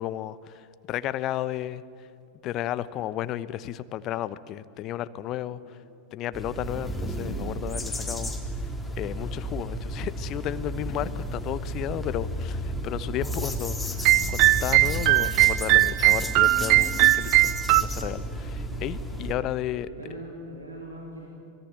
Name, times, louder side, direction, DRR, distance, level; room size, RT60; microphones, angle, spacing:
voice 1, 0.0-1.8 2.4-5.8 6.1-8.3 9.0-19.9, left 12 dB, 35° left, 16 dB, 1.0 m, -33 dB
voice 2, 5.4-5.8 18.9-19.3 19.9-21.3, right 1 dB, 75° right, -1 dB, 4.2 m, -42 dB
sound 1, 6.3-19.3, equal, 5° left, 3.3 m, -32 dB
sound 2, 14.0-17.8, right 18 dB, 45° right, 0.6 m, -20 dB
25.0 x 21.0 x 9.6 m, 2.4 s
figure-of-eight pair, 90°, 0 cm